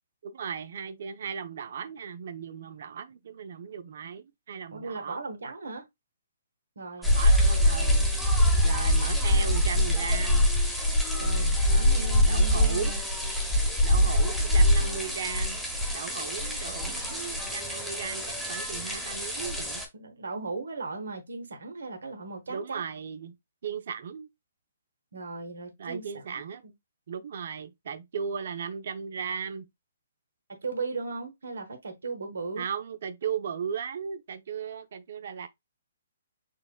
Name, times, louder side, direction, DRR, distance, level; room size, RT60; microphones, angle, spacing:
voice 1, 0.2-5.2 7.1-8.1 8.6-10.5 12.2-13.0 13.8-15.6 15.9-19.8 22.5-23.3 23.6-24.3 25.8-26.6 27.1-29.7 32.6-35.5, right 7 dB, 60° right, 0.5 m, -36 dB
voice 2, 4.7-5.8 6.8-7.2 11.1-13.0 19.9-22.9 25.1-26.1 26.3-26.7 30.6-32.6, right 3 dB, 75° right, 1.0 m, -37 dB
sound 1, 7.0-19.9, left 1 dB, ahead, 0.9 m, -24 dB
6.4 x 2.1 x 2.3 m
hypercardioid pair, 145°, 0 cm